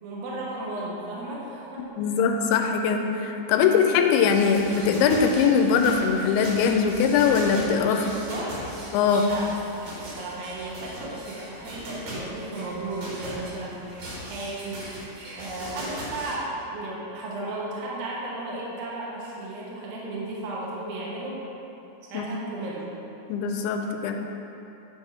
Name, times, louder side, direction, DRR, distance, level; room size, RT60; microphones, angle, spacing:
voice 1, 0.0-2.2 7.9-8.6 9.2-14.9 15.3-21.4 22.1-22.9, right 2 dB, 75° right, -5 dB, 2.7 m, -35 dB
voice 2, 2.0-8.0 8.9-9.3 22.1-22.3 23.3-24.2, left 6 dB, 85° left, 4 dB, 2.5 m, -21 dB
sound 1, 4.2-16.4, equal, 55° right, 2.3 m, -39 dB
10.0 x 3.5 x 5.6 m, 3.0 s
omnidirectional pair, 4.4 m